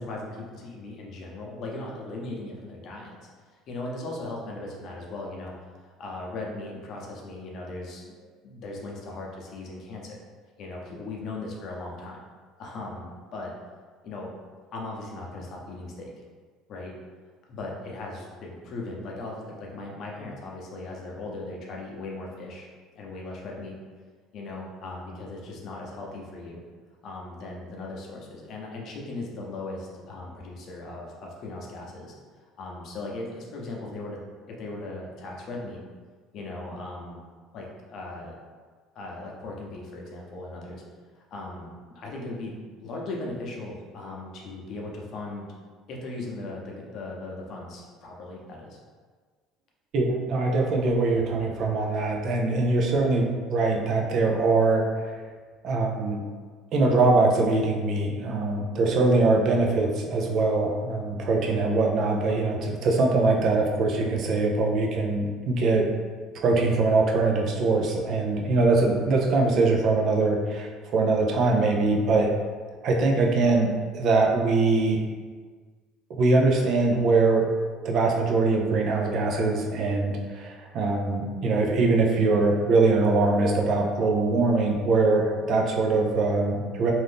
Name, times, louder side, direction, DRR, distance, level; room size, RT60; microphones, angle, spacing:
voice 1, 0.0-3.2 3.7-5.5 5.8-10.2 10.6-12.2 12.6-13.5 14.0-14.3 14.7-16.1 16.7-16.9 17.5-22.7 23.0-23.8 24.3-26.6 27.0-32.1 32.6-34.2 34.5-35.8 36.3-37.2 37.5-38.3 38.9-40.8 41.2-42.6 42.8-45.5 45.9-48.8, left 2 dB, 55° left, -2 dB, 0.7 m, -38 dB
voice 2, 49.9-54.9 55.6-56.2 56.7-65.9 66.3-72.3 72.8-75.1 76.1-77.5 77.8-86.9, right 3 dB, 55° right, 1 dB, 0.5 m, -22 dB
2.6 x 2.5 x 3.5 m, 1.5 s
supercardioid pair, 105°, 0 cm